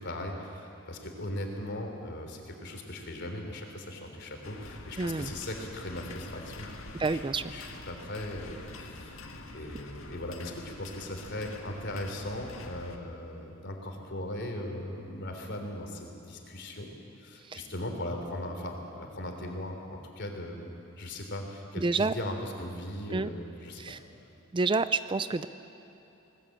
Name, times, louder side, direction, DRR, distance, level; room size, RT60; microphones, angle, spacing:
voice 1, 0.0-6.7 7.1-9.3 9.5-16.9 17.2-23.8, left 1 dB, 55° left, 3 dB, 3.4 m, -38 dB
sound 1, 4.4-13.0, left 2 dB, 75° left, 1.9 m, -46 dB
voice 2, 5.0-5.3 7.0-7.5 17.4-17.6 21.8-22.1 23.1-23.3 23.8-24.0 24.5-25.5, right 3 dB, 25° right, 13 dB, 0.4 m, -29 dB
21.0 x 19.5 x 8.8 m, 3.0 s
head